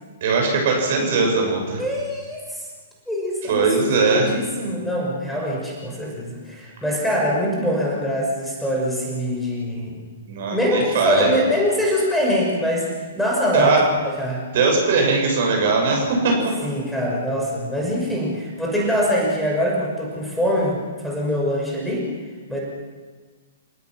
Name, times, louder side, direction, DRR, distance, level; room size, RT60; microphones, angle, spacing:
voice 1, 0.2-1.8 3.5-4.3 10.3-11.3 13.5-13.8 14.5-16.5, right 4 dB, 50° right, 1 dB, 7.1 m, -20 dB
voice 2, 1.8-2.7 3.1-9.9 10.5-13.7 14.2-14.4 16.6-22.1 22.5-22.6, equal, 5° left, -3 dB, 5.9 m, -23 dB
29.5 x 17.0 x 6.3 m, 1.4 s
figure-of-eight pair, 110°, 0 cm